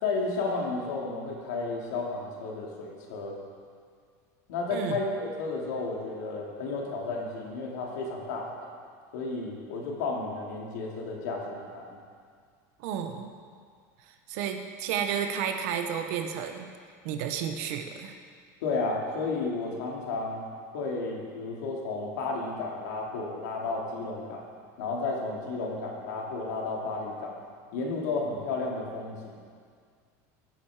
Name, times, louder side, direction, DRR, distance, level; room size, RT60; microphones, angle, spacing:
voice 1, 0.0-3.4 4.5-8.7 9.1-11.8 18.6-20.4 20.7-24.4 24.8-27.4 27.7-29.3, left 3 dB, 85° left, -2 dB, 2.8 m, -32 dB
voice 2, 12.8-13.3 14.1-16.7 17.0-18.1, right 8 dB, 65° right, 6 dB, 1.1 m, -32 dB
17.0 x 7.6 x 4.9 m, 2.1 s
supercardioid pair, 150°, 9 cm